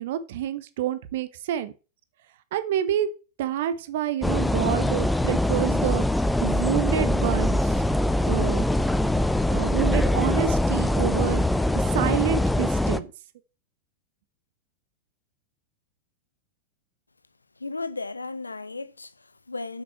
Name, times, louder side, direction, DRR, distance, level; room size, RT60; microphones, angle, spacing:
voice 1, 0.0-1.7 2.5-3.1 3.4-6.0 6.4-7.7 8.3-8.7 9.5-11.4 11.9-13.1, right 11 dB, 55° right, 0.9 m, -28 dB
sound 1, 4.2-13.0, left 1 dB, 5° left, 0.6 m, -23 dB
voice 2, 17.6-19.8, left 3 dB, 80° left, 0.6 m, -35 dB
8.1 x 6.2 x 5.7 m
figure-of-eight pair, 90°, 0 cm